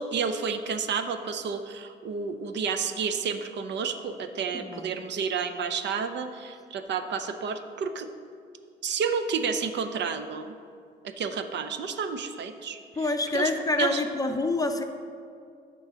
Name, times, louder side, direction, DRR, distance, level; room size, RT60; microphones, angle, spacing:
voice 1, 0.0-8.1 8.8-10.6 11.0-13.5 13.8-14.0, right 6 dB, 60° right, 9 dB, 0.6 m, -31 dB
voice 2, 4.5-4.9 13.0-14.8, left 2 dB, 20° left, 6 dB, 0.6 m, -27 dB
9.2 x 3.8 x 6.1 m, 2.3 s
cardioid pair, 90°, 20 cm